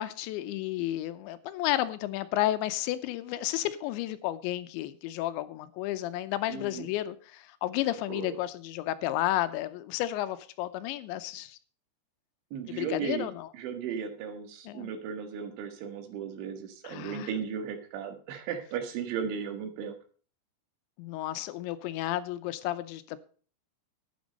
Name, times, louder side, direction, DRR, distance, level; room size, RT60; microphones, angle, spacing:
voice 1, 0.0-11.6 12.7-13.5 14.7-14.9 16.8-17.3 21.0-23.2, left 14 dB, 80° left, 13 dB, 3.0 m, -32 dB
voice 2, 6.5-6.9 8.1-8.4 12.5-13.3 13.5-20.0, right 7 dB, 80° right, 7 dB, 4.0 m, -36 dB
11.5 x 9.6 x 5.2 m, 0.40 s
omnidirectional pair, 5.3 m